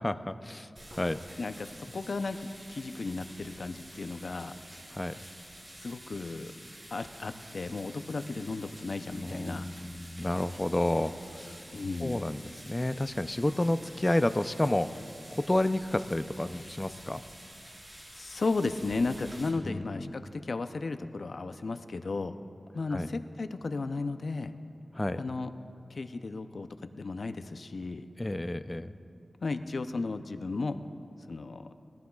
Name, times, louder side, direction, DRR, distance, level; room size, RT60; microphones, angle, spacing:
voice 1, 0.0-1.2 4.9-5.1 9.2-11.6 12.0-15.0 15.3-17.2 19.6-20.3 22.9-23.1 24.9-25.2 28.2-28.9, left 1 dB, 25° left, 11 dB, 0.5 m, -30 dB
sound 1, 0.8-19.5, right 1 dB, 40° right, 3.8 m, -49 dB
voice 2, 1.4-4.5 5.8-6.5 6.9-9.6 11.7-12.2 18.1-22.3 22.7-24.5 25.2-25.5 25.9-28.1 29.4-30.8 31.3-31.7, left 3 dB, 75° left, 9 dB, 0.6 m, -34 dB
22.0 x 15.0 x 2.4 m, 2.6 s
wide cardioid pair, 60°, 0 cm